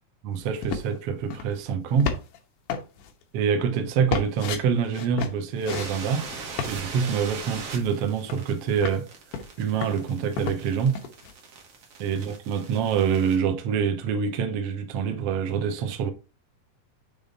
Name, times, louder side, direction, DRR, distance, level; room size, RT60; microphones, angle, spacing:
voice 1, 0.2-2.1 3.3-6.3 6.7-9.1 9.6-11.0 12.0-16.1, right 7 dB, 90° right, 1.3 m, -26 dB
sound 1, 0.6-1.0 1.3-1.6 2.0-2.4 2.7-3.1 4.1-4.6 4.9-5.9 6.2-6.7 7.9-8.0 8.3-9.0 9.3-10.7 10.9-11.3, left 6 dB, 75° left, 2.2 m, -32 dB
sound 2, 5.7-13.4, right 4 dB, 55° right, 1.8 m, -41 dB
7.0 x 3.5 x 3.9 m
omnidirectional pair, 4.3 m